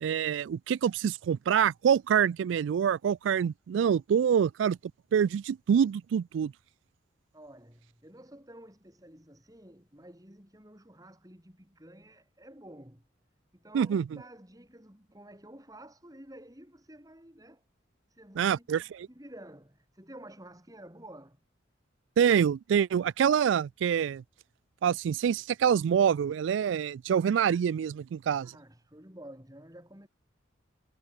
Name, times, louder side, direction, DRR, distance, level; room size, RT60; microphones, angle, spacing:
voice 1, 0.0-4.8 5.1-6.5 13.7-14.0 18.4-18.8 22.2-24.2 24.8-28.5, right 8 dB, 85° right, 0.3 m, -26 dB
voice 2, 7.3-13.0 13.5-17.6 18.1-18.7 19.1-21.4 28.4-30.1, right 1 dB, 20° right, 7.7 m, -51 dB
head